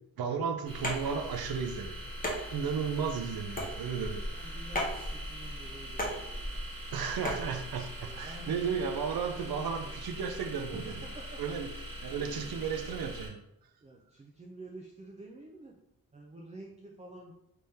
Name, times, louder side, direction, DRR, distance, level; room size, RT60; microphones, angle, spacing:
voice 1, 0.2-2.0 2.5-4.3 6.9-11.0 11.4-11.7 12.0-13.4, right 6 dB, 80° right, 6 dB, 0.5 m, -34 dB
sound 1, 0.6-13.3, equal, 65° right, 0.9 m, -42 dB
sound 2, 0.8-7.5, equal, 25° left, 0.7 m, -37 dB
voice 2, 4.3-6.6 8.0-8.8 9.3-10.0 10.7-11.4 12.0-12.6 13.8-15.8 16.1-17.3, right 2 dB, 20° right, 0 dB, 0.3 m, -48 dB
3.4 x 3.4 x 2.7 m, 0.83 s
wide cardioid pair, 150°, 36 cm